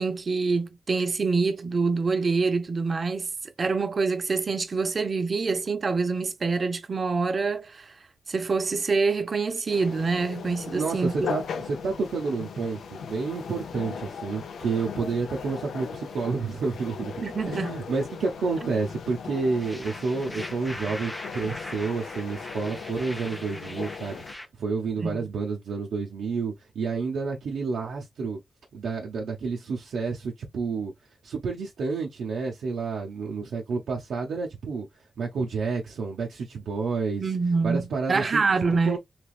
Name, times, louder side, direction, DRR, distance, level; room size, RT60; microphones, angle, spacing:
voice 1, 0.0-7.9 8.3-11.3 17.2-17.7 25.0-25.3 37.2-39.0, right 4 dB, 45° right, 0.6 m, -26 dB
sound 1, 9.7-24.4, left 6 dB, 85° left, 0.5 m, -38 dB
voice 2, 10.7-28.4 28.7-30.9 31.2-34.9 35.2-37.3 37.6-38.4 38.9-39.0, right 4 dB, 85° right, 0.6 m, -30 dB
sound 2, 19.6-24.5, left 1 dB, 5° left, 0.4 m, -41 dB
3.3 x 2.9 x 2.3 m
wide cardioid pair, 105°, 0 cm